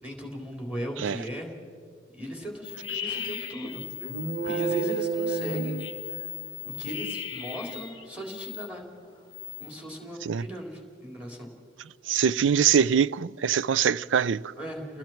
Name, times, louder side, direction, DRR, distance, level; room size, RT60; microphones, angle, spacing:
voice 1, 0.0-1.5 2.1-3.8 4.4-5.8 6.6-8.9 9.6-11.5 14.6-15.0, equal, 5° right, 3.5 m, -37 dB
sound 1, 2.6-8.7 9.1-9.7, left 9 dB, 25° left, 1.2 m, -37 dB
sound 2, 4.0-6.6, right 5 dB, 60° right, 1.1 m, -30 dB
voice 2, 12.1-14.4, right 7 dB, 85° right, 0.4 m, -23 dB
30.0 x 20.0 x 4.5 m
head